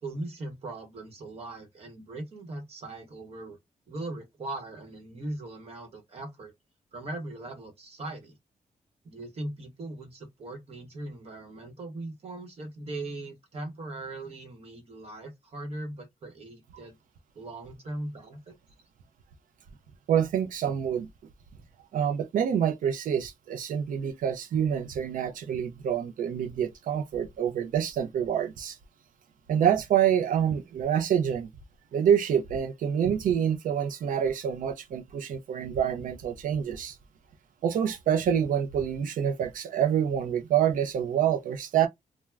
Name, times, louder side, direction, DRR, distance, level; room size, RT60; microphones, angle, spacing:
voice 1, 0.0-3.6 3.9-6.5 6.9-8.3 9.0-17.0 17.3-18.5, right 2 dB, 50° right, 1.0 m, -39 dB
voice 2, 20.1-21.1 21.9-28.8 29.5-31.5 31.9-37.0 37.6-41.9, right 9 dB, 80° right, 0.4 m, -27 dB
2.3 x 2.1 x 3.2 m
wide cardioid pair, 155°, 14 cm